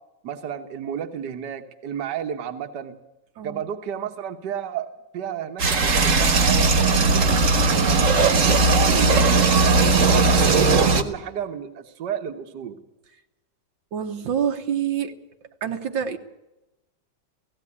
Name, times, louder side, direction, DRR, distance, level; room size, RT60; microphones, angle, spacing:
voice 1, 0.2-3.0 3.4-7.4 7.9-12.8, right 9 dB, 65° right, 7 dB, 1.7 m, -32 dB
sound 1, 5.6-11.0, right 3 dB, 45° right, 1.6 m, -18 dB
voice 2, 7.7-8.1 13.9-15.1 15.6-16.2, right 8 dB, 80° right, 5 dB, 2.0 m, -27 dB
17.0 x 16.0 x 9.7 m, 1.0 s
omnidirectional pair, 2.0 m